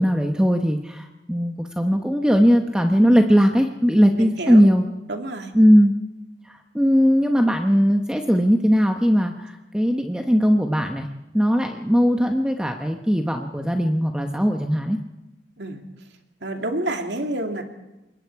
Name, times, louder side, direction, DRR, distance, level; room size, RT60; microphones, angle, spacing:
voice 1, 0.0-4.8 5.5-5.9 6.5-11.1 11.3-15.0, equal, 5° right, 4 dB, 1.0 m, -19 dB
voice 2, 4.2-4.7 5.1-5.5 15.6-15.8 16.4-17.6, right 1 dB, 85° right, 4 dB, 2.7 m, -28 dB
26.0 x 21.0 x 4.8 m, 1.0 s
head